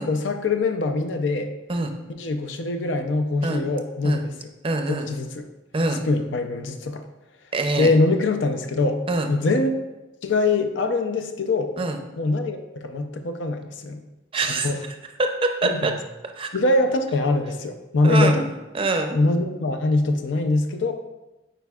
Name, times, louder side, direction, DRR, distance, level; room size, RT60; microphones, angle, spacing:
voice 1, 0.0-1.5 2.2-4.2 4.9-5.4 6.1-7.0 7.8-9.7 10.2-11.7 12.2-12.6 12.8-14.0 14.6-14.8 15.6-15.8 16.5-18.5 19.1-20.9, left 2 dB, 85° left, 7 dB, 0.6 m, -23 dB
voice 2, 4.6-5.1 5.7-6.1 7.5-7.9 9.1-9.3 11.8-12.0 14.3-14.7 15.4-15.9 16.3-16.5 18.0-18.4 18.7-19.2, right 2 dB, 30° right, 5 dB, 0.5 m, -24 dB
9.1 x 4.5 x 2.4 m, 1.0 s
head